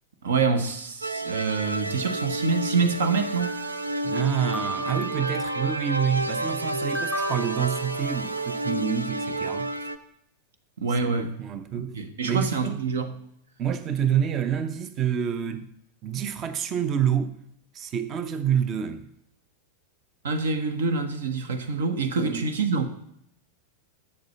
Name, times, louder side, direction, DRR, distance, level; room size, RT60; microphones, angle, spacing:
voice 1, 0.2-3.5 10.8-11.4 11.7-13.2 20.2-22.9, right 4 dB, 65° right, 1.1 m, -26 dB
sound 1, 1.0-10.0, right 1 dB, 80° right, 0.5 m, -30 dB
sound 2, 3.4-4.3 4.5-5.9 6.9-8.5, right 2 dB, 10° right, 1.9 m, -36 dB
voice 2, 4.0-9.7 11.0-12.0 12.2-12.8 13.6-15.7 16.0-17.4 17.7-19.1 22.2-22.5, right 8 dB, 30° right, 0.7 m, -27 dB
7.8 x 7.0 x 6.9 m
figure-of-eight pair, 90°, 0 cm